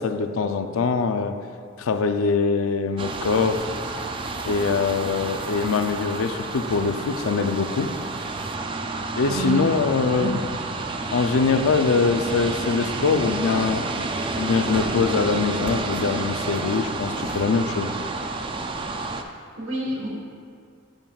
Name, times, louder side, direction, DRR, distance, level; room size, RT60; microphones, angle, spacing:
voice 1, 0.0-1.4 1.8-3.7 4.5-7.9 9.2-10.4 11.1-13.8 14.4-18.0, left 4 dB, 85° left, 8 dB, 0.4 m, -23 dB
sound 1, 3.0-19.2, right 3 dB, 25° right, 0.3 m, -30 dB
voice 2, 9.3-9.7 10.1-10.4 19.6-20.1, right 1 dB, 70° right, -3 dB, 1.6 m, -28 dB
8.8 x 8.5 x 2.3 m, 2.2 s
head